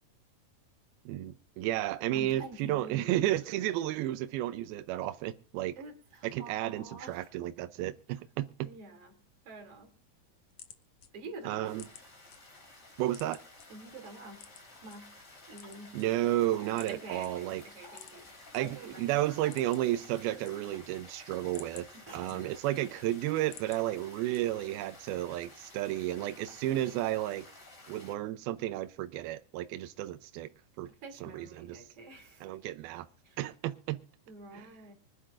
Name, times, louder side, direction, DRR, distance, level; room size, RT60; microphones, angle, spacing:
voice 1, 1.1-5.7 6.2-8.7 11.5-11.8 13.0-13.4 15.9-17.6 18.5-21.9 22.1-27.5 27.9-30.5 30.8-30.9 31.2-31.8 32.4-33.1 33.4-34.0 34.5-34.7, right 14 dB, 80° right, 2.4 m, -32 dB
voice 2, 2.1-3.3 5.8-7.3 8.6-9.9 11.1-11.7 13.7-14.5 14.8-15.1 15.5-16.0 16.9-19.4 22.0-22.5 31.0-32.5 33.2-33.4 34.3-34.9, right 2 dB, 40° right, 3.2 m, -48 dB
sound 1, 10.1-12.4 12.7-13.7 14.4-15.0 15.4-16.4 16.8-17.0 17.2-17.3 17.9-18.6 19.0-19.1 19.3-20.0 20.3-20.9 21.3-22.8 23.2-23.8 24.3-24.8, left 9 dB, 70° left, 1.8 m, -52 dB
sound 2, 11.6-28.1, left 2 dB, 20° left, 2.8 m, -53 dB
sound 3, 15.6-15.7 16.5-16.7 17.8-18.0 19.5-19.7 20.7-20.8 22.1-22.2, left 3 dB, 40° left, 4.9 m, -52 dB
25.0 x 10.0 x 2.5 m
omnidirectional pair, 4.6 m